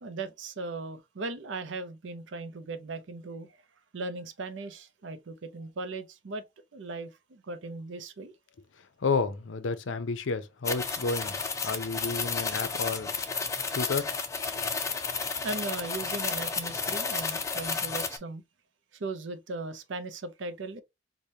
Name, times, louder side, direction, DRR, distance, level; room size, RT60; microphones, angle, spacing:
voice 1, 0.0-3.6 3.9-6.4 6.7-8.3 14.7-14.8 15.4-18.4 18.9-20.8, right 3 dB, 75° right, 0.6 m, -38 dB
voice 2, 9.0-11.4 11.6-13.1 13.7-14.1 14.5-14.6, left 4 dB, 80° left, 0.5 m, -31 dB
sound 1, 10.6-18.2, left 5 dB, 15° left, 0.4 m, -32 dB
4.9 x 2.1 x 2.7 m
head